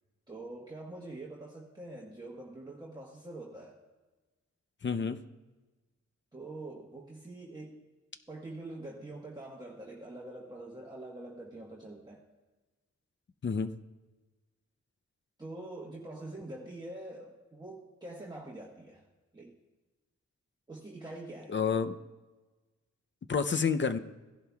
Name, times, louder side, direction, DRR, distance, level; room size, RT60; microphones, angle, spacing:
voice 1, 0.3-3.8 6.3-7.8 8.3-12.2 15.4-19.1 19.3-19.6 20.7-21.5, right 2 dB, 15° right, -3 dB, 1.3 m, -45 dB
voice 2, 4.8-5.2 13.4-13.7 21.5-22.0 23.3-24.0, left 5 dB, 40° left, 9 dB, 0.6 m, -29 dB
16.5 x 11.0 x 2.3 m, 1.2 s
wide cardioid pair, 85°, 29 cm